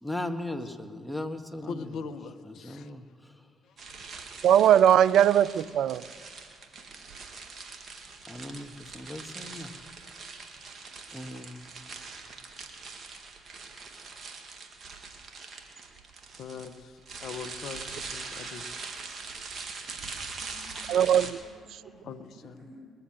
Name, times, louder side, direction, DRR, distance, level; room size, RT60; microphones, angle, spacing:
voice 1, 0.0-1.9 2.6-3.3 8.3-9.7 11.1-11.6, left 1 dB, 5° left, 6 dB, 1.5 m, -37 dB
voice 2, 1.6-2.9 3.6-3.9 16.4-18.7 22.0-22.6, left 5 dB, 65° left, 9 dB, 0.9 m, -41 dB
sound 1, 3.8-21.3, right 4 dB, 50° right, 2.0 m, -43 dB
voice 3, 4.4-6.1 20.9-21.4, right 10 dB, 70° right, 19 dB, 0.4 m, -20 dB
voice 4, 20.1-21.0 21.4-22.8, equal, 25° right, -4 dB, 3.9 m, -54 dB
21.0 x 7.7 x 7.5 m, 2.1 s
hypercardioid pair, 55°, 0 cm